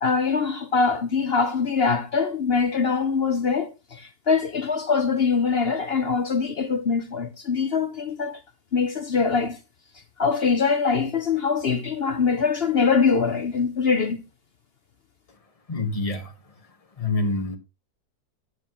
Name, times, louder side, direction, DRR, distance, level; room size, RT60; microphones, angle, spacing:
voice 1, 0.0-8.4 8.7-9.6 10.2-14.2, left 5 dB, 50° left, 0.8 m, -23 dB
voice 2, 15.7-16.3 17.0-17.6, left 2 dB, 25° left, 1.3 m, -26 dB
12.0 x 8.1 x 3.0 m
omnidirectional pair, 1.7 m